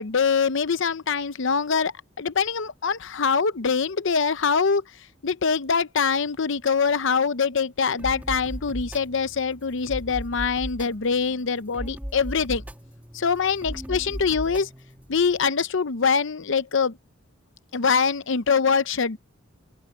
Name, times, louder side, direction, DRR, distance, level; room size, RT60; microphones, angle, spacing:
voice 1, 0.0-1.9 2.2-4.8 5.2-12.6 13.1-14.7 15.1-17.0 17.7-19.2, left 5 dB, 65° left, 0.7 m, -24 dB
sound 1, 8.0-15.5, equal, 10° right, 2.0 m, -37 dB
open air
head